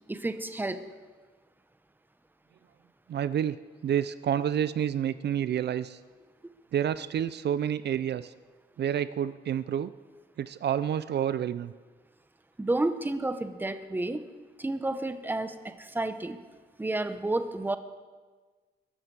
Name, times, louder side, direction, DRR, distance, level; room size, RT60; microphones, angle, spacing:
voice 1, 0.1-0.9 12.6-14.2 14.6-16.4 16.8-17.8, right 2 dB, 10° right, 10 dB, 0.8 m, -31 dB
voice 2, 3.1-3.6 3.8-6.0 6.7-8.3 8.8-9.9 10.4-11.7, right 9 dB, 70° right, 15 dB, 0.4 m, -29 dB
21.5 x 12.0 x 4.7 m, 1.4 s
wide cardioid pair, 145°, 18 cm